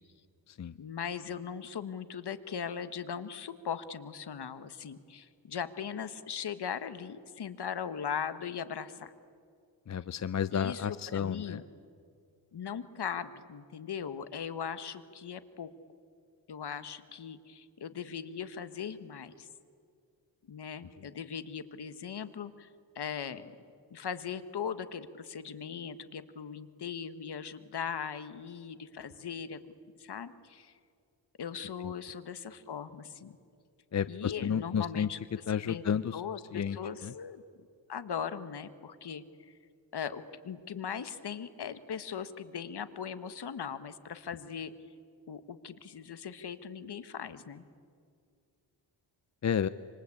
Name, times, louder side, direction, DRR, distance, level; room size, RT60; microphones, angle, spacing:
voice 1, 0.8-9.1 10.5-10.9 11.1-11.6 12.5-15.7 16.5-19.5 20.5-22.7 22.9-23.5 23.9-29.6 30.0-30.7 31.4-33.3 34.1-35.2 35.7-37.4 37.9-39.5 39.9-44.7 45.3-47.6, left 7 dB, 60° left, 11 dB, 1.5 m, -39 dB
voice 2, 9.9-11.6 21.0-21.1 31.8-31.9 33.9-35.1 35.5-36.2 36.5-36.8 37.0-37.1 49.4-49.7, left 8 dB, 40° left, 14 dB, 0.6 m, -31 dB
26.5 x 25.0 x 8.7 m, 2.2 s
wide cardioid pair, 105°, 46 cm